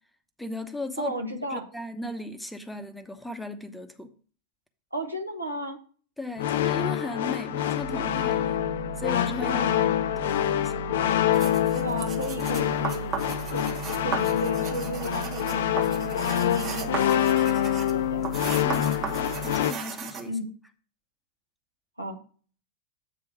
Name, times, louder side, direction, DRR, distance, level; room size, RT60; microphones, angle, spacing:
voice 1, 0.4-1.1 1.5-4.1 6.2-8.6 9.0-9.9 10.2-10.7 18.6-20.4, left 2 dB, 5° left, 0.8 m, -36 dB
voice 2, 1.0-1.7 4.9-5.8 9.4-9.9 11.7-13.2 13.5-18.2 20.3-20.5 22.0-22.2, equal, 85° right, 1.3 m, -34 dB
sound 1, 6.4-19.7, left 12 dB, 55° left, 0.4 m, -26 dB
sound 2, 7.8-19.6, right 5 dB, 90° left, 1.0 m, -38 dB
sound 3, 11.3-20.3, right 6 dB, 30° right, 1.3 m, -37 dB
8.3 x 3.7 x 6.0 m
figure-of-eight pair, 90°, 0 cm